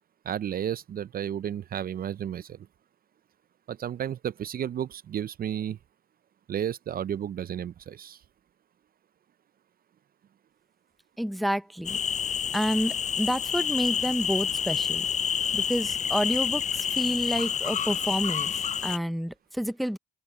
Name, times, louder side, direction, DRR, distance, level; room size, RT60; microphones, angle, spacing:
voice 1, 0.2-2.7 3.7-5.8 6.5-8.2, right 9 dB, 55° right, 0.5 m, -32 dB
voice 2, 11.2-12.0 12.5-15.1 15.5-20.0, equal, ahead, 0.6 m, -29 dB
sound 1, 11.8-19.0, left 8 dB, 40° left, 0.4 m, -28 dB
open air
supercardioid pair, 55°, 18 cm